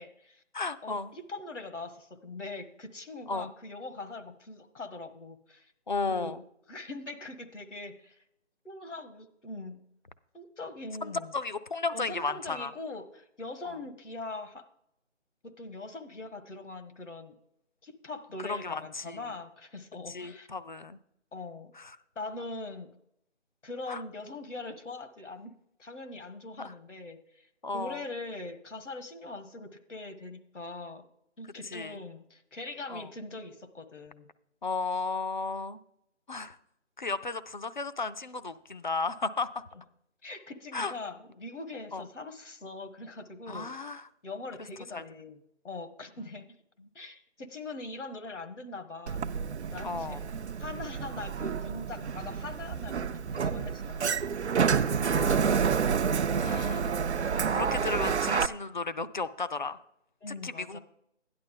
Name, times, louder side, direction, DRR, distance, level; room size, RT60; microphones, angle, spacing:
voice 1, 0.0-0.4 0.8-5.7 6.1-6.4 6.7-8.2 8.6-9.8 10.3-11.3 11.9-14.6 15.4-17.3 17.8-20.5 21.3-21.7 22.1-22.9 23.6-25.5 25.8-27.5 27.7-31.1 31.4-34.3 40.2-43.7 44.2-46.6 46.9-49.2 49.7-50.3 50.6-54.7 60.2-60.8, left 2 dB, 75° left, 8 dB, 1.5 m, -42 dB
voice 2, 0.5-1.1 3.3-3.5 5.9-6.4 11.0-12.7 13.6-13.8 18.5-19.2 20.1-21.0 21.8-22.0 23.9-24.0 26.6-26.7 27.6-28.0 31.7-32.0 32.9-33.1 34.6-35.8 36.3-36.6 37.0-39.6 40.7-40.9 41.9-42.0 43.5-44.1 44.9-45.0 49.8-50.2 54.6-55.6 56.3-57.0 57.3-59.8 60.4-60.8, left 3 dB, 40° left, 13 dB, 0.5 m, -34 dB
Sliding door, 49.1-58.5, right 6 dB, 65° right, 0.6 m, -29 dB
12.5 x 10.5 x 3.7 m, 0.76 s
figure-of-eight pair, 160°, 36 cm